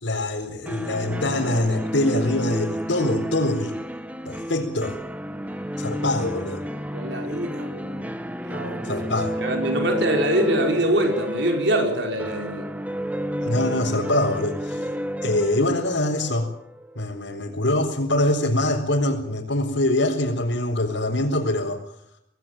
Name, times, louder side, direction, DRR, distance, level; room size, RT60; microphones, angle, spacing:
voice 1, 0.0-3.8 4.2-5.0 5.8-6.6 8.8-9.3 13.4-14.9 15.2-16.5 17.0-21.8, left 1 dB, 75° left, -3 dB, 4.3 m, -24 dB
sound 1, 0.7-17.4, equal, 10° right, 1.2 m, -31 dB
voice 2, 6.9-8.1 8.4-8.9 9.4-12.7, right 1 dB, 65° right, 3 dB, 5.3 m, -24 dB
26.0 x 18.5 x 9.1 m, 0.72 s
head